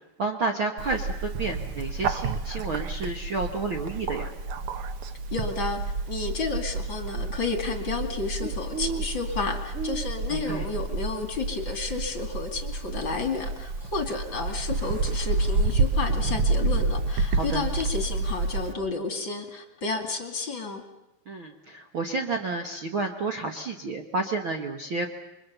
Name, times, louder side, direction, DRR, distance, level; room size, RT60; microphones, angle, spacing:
voice 1, 0.2-4.3 10.3-10.7 17.3-17.7 21.3-25.1, right 3 dB, 50° right, 3 dB, 1.7 m, -30 dB
Bird, 0.8-18.7, right 3 dB, 65° right, 1.4 m, -29 dB
voice 2, 5.3-5.8 6.1-20.8, left 4 dB, 35° left, 5 dB, 2.8 m, -31 dB
29.5 x 24.0 x 6.9 m, 0.93 s
omnidirectional pair, 3.9 m